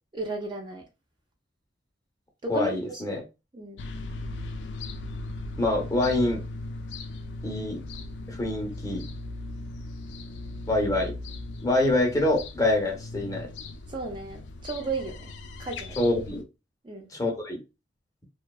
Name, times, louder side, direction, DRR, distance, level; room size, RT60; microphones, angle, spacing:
voice 1, 0.1-0.8 2.4-3.2 3.5-3.8 13.9-15.3 15.6-16.0 16.8-17.1, right 3 dB, 25° right, 0.4 m, -34 dB
voice 2, 2.5-3.2 5.6-6.4 7.4-7.8 8.3-9.1 10.7-11.1 11.6-13.5 16.0-16.4 17.1-17.6, left 2 dB, 20° left, 0.6 m, -25 dB
sound 1, 3.8-16.4, left 2 dB, 75° left, 0.4 m, -38 dB
2.6 x 2.2 x 2.3 m
head